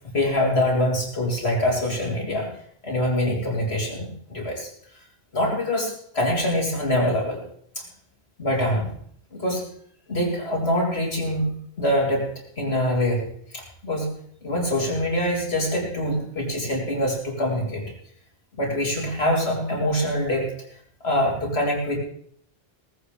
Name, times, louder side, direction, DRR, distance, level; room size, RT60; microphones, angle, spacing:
voice 1, 0.1-2.5 2.8-4.7 5.3-7.4 7.8-7.9 8.4-8.9 9.3-9.7 10.1-12.3 12.6-13.2 13.5-14.1 14.4-17.9 18.6-20.5 21.0-22.0, left 1 dB, 85° left, -1 dB, 3.8 m, -24 dB
18.0 x 15.0 x 3.4 m, 0.63 s
omnidirectional pair, 1.0 m